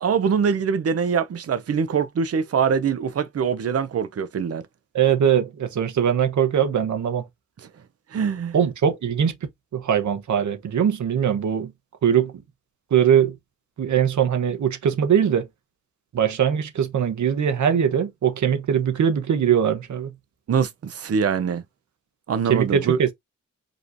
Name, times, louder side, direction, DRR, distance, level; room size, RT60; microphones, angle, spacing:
voice 1, 0.0-4.6 8.1-8.5 20.5-21.6 22.3-23.0, right 6 dB, 55° right, 0.7 m, -23 dB
voice 2, 4.9-7.2 8.5-9.3 9.7-11.7 12.0-12.3 12.9-13.3 13.8-15.5 16.1-20.1 22.5-23.1, right 8 dB, 75° right, 1.1 m, -21 dB
5.1 x 3.1 x 2.6 m
wide cardioid pair, 180°, 30 cm